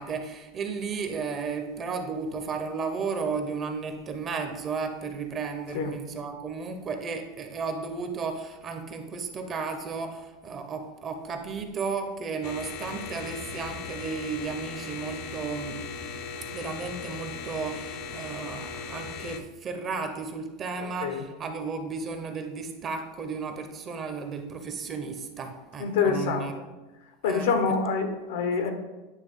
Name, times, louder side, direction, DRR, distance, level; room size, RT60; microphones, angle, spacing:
voice 1, 0.0-15.8 16.5-26.5 27.2-27.7, right 5 dB, 30° right, 6 dB, 0.7 m, -34 dB
sound 1, 12.4-19.4, left 5 dB, 60° left, 0.5 m, -38 dB
voice 2, 20.8-21.3 25.8-26.5 27.2-28.7, left 5 dB, 80° left, 6 dB, 0.9 m, -26 dB
9.2 x 3.1 x 3.6 m, 1.1 s
supercardioid pair, 135°, 0 cm